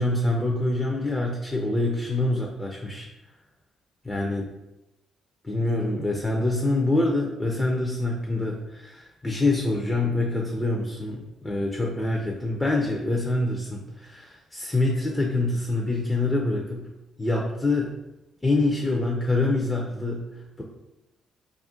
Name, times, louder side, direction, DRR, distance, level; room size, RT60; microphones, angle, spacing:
voice 1, 0.0-3.1 4.0-4.5 5.4-16.8 17.2-17.9 18.4-20.2 20.6-20.7, left 2 dB, 15° left, -1 dB, 0.4 m, -25 dB
2.4 x 2.1 x 3.6 m, 0.95 s
cardioid pair, 90°, 0 cm